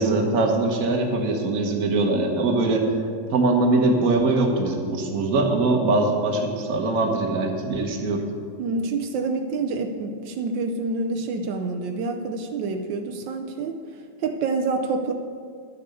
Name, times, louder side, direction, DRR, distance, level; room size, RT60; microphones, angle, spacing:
voice 1, 0.0-2.9 3.3-8.2, right 2 dB, 50° right, 3 dB, 1.5 m, -22 dB
voice 2, 8.6-13.8 14.2-15.1, right 3 dB, 85° right, 4 dB, 1.4 m, -27 dB
10.5 x 6.8 x 6.8 m, 2.2 s
omnidirectional pair, 2.0 m